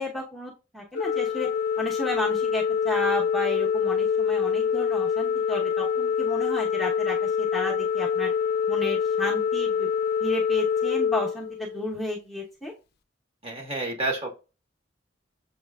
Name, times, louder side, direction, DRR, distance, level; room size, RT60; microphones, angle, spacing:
voice 1, 0.0-1.5 1.8-8.3 8.7-9.9 10.2-12.7, left 1 dB, ahead, -4 dB, 1.0 m, -33 dB
Organ, 0.9-12.0, left 7 dB, 60° left, 0.4 m, -25 dB
voice 2, 13.4-14.3, right 2 dB, 35° right, 2 dB, 1.3 m, -29 dB
7.3 x 3.0 x 2.3 m, 0.31 s
head